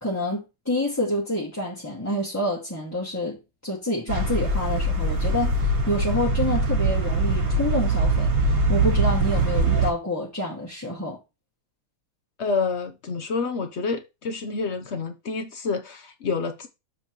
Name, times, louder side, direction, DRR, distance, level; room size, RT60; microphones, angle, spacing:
voice 1, 0.0-8.3 8.7-11.2, left 1 dB, 10° left, 1.7 m, -28 dB
sound 1, 4.1-9.9, right 2 dB, 45° right, 2.1 m, -22 dB
voice 2, 12.4-16.7, left 4 dB, 60° left, 0.7 m, -28 dB
7.6 x 5.9 x 3.1 m
omnidirectional pair, 2.3 m